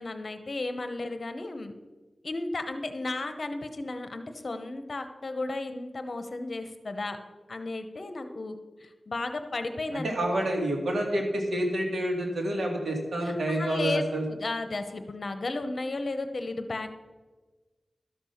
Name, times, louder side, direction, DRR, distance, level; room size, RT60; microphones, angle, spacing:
voice 1, 0.0-1.7 2.2-7.2 7.5-8.6 8.8-10.1 13.2-16.9, left 2 dB, 50° left, 8 dB, 0.9 m, -34 dB
voice 2, 9.9-14.2, right 1 dB, 80° right, 1 dB, 2.2 m, -28 dB
12.5 x 6.8 x 5.8 m, 1.3 s
wide cardioid pair, 110°, 0 cm